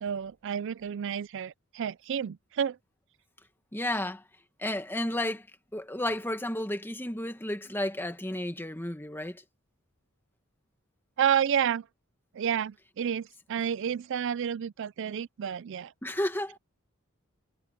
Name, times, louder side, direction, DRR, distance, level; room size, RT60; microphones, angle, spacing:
voice 1, 0.0-2.8 11.2-11.8 12.3-15.9, right 8 dB, 60° right, 0.4 m, -30 dB
voice 2, 3.7-4.2 4.6-5.5 5.7-9.4 16.0-16.6, left 1 dB, 10° left, 1.8 m, -32 dB
head